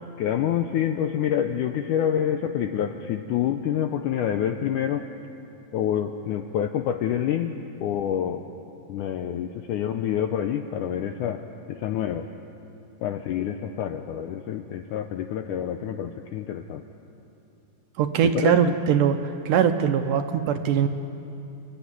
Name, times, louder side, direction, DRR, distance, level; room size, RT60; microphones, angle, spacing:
voice 1, 0.2-5.1 5.7-8.4 8.9-11.4 11.7-12.3 13.0-16.8 18.2-18.8, left 9 dB, 90° left, 6 dB, 1.8 m, -27 dB
voice 2, 18.0-20.9, right 8 dB, 75° right, 7 dB, 2.0 m, -22 dB
29.5 x 13.0 x 9.6 m, 2.8 s
omnidirectional pair, 4.4 m